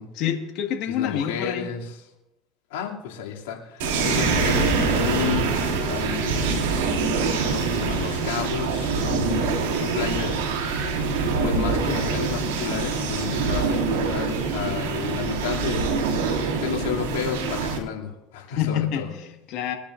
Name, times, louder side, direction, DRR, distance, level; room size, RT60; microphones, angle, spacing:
voice 1, 0.1-1.7 3.8-3.9 18.5-19.8, left 9 dB, 65° left, 3 dB, 1.7 m, -27 dB
voice 2, 0.9-1.9 2.7-5.5 5.9-6.6 7.5-10.5 11.4-15.9 16.5-19.1, left 8 dB, 85° left, -2 dB, 2.8 m, -31 dB
sound 1, 3.8-17.8, right 4 dB, 85° right, 2.6 m, -24 dB
23.0 x 10.0 x 2.6 m, 0.90 s
supercardioid pair, 90°, 0 cm